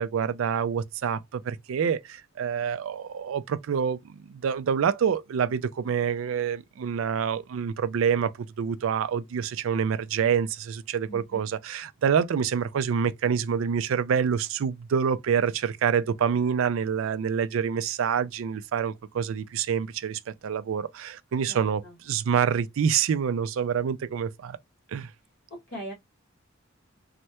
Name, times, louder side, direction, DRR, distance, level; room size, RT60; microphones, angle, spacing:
voice 1, 0.0-24.6 24.9-25.1, right 7 dB, 75° right, 0.4 m, -27 dB
voice 2, 11.1-11.4 21.5-22.0 25.7-25.9, equal, 55° left, 1.4 m, -40 dB
3.2 x 2.1 x 2.8 m
head